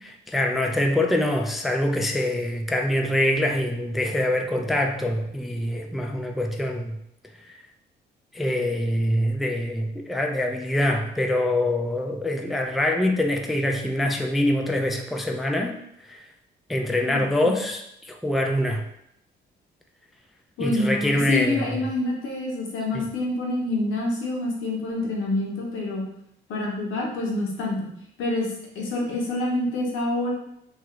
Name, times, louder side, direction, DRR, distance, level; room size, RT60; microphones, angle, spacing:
voice 1, 0.3-7.0 7.5-7.6 8.3-15.8 16.0-16.2 16.7-18.8 20.6-21.9 22.9-23.0, left 1 dB, ahead, 1 dB, 0.3 m, -24 dB
voice 2, 17.0-17.6 20.6-26.0 26.5-27.9 28.2-30.3, left 2 dB, 85° left, -1 dB, 0.8 m, -27 dB
2.8 x 2.4 x 3.0 m, 0.77 s
cardioid pair, 90°, 20 cm